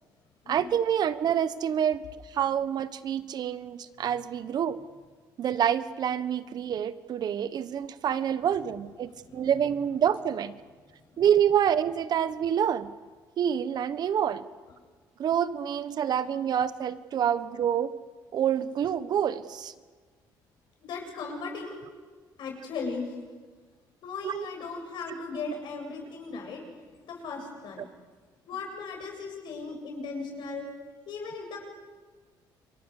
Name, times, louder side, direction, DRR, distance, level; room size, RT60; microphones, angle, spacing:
voice 1, 0.5-4.8 5.4-10.5 11.2-12.9 13.4-14.4 15.2-17.9 18.3-19.7 24.2-24.4 27.8-27.9, right 9 dB, 55° right, 13 dB, 1.3 m, -27 dB
voice 2, 20.8-21.8 22.4-23.2 24.0-26.6 27.0-27.9 28.4-30.7 31.1-31.7, left 4 dB, 70° left, 2 dB, 8.0 m, -37 dB
28.0 x 23.5 x 6.7 m, 1.5 s
cardioid pair, 100°, 8 cm